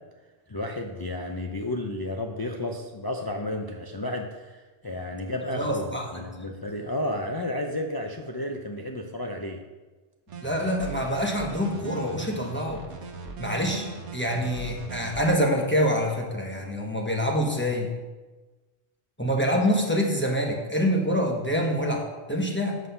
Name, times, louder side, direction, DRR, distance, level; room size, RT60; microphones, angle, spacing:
voice 1, 0.5-9.6, left 1 dB, 35° left, 2 dB, 0.3 m, -32 dB
voice 2, 5.5-6.2 10.4-12.8 13.4-13.9 14.1-17.9 19.2-22.8, equal, 10° left, 0 dB, 1.0 m, -26 dB
sound 1, 10.3-15.3, right 4 dB, 75° right, 1.3 m, -39 dB
7.6 x 6.0 x 5.6 m, 1.3 s
omnidirectional pair, 1.2 m